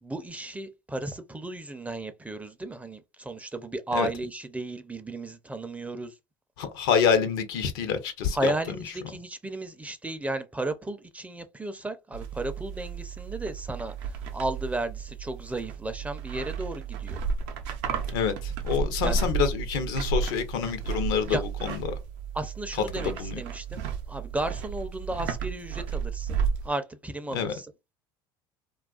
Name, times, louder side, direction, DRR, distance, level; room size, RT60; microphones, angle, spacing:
voice 1, 0.0-6.1 8.3-17.2 19.0-19.2 21.3-21.4 22.3-23.8 24.1-27.7, right 2 dB, 10° right, 0.4 m, -34 dB
voice 2, 6.6-8.7 18.1-21.9 23.0-23.4 27.3-27.5, left 7 dB, 75° left, 0.6 m, -27 dB
sound 1, 12.1-26.7, right 5 dB, 75° right, 0.5 m, -33 dB
2.3 x 2.2 x 2.3 m
hypercardioid pair, 75°, 12 cm